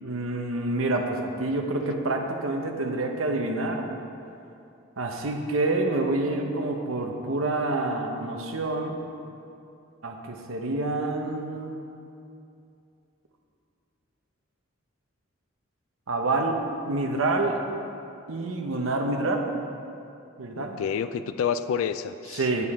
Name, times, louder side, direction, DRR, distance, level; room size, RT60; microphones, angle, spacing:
voice 1, 0.0-3.9 5.0-9.0 10.0-11.8 16.1-16.6 16.9-17.6 18.3-19.5 20.4-20.8 22.3-22.7, right 2 dB, 85° right, 3 dB, 0.9 m, -27 dB
voice 2, 20.6-22.6, left 7 dB, 85° left, 12 dB, 0.3 m, -29 dB
8.2 x 7.2 x 4.2 m, 2.6 s
head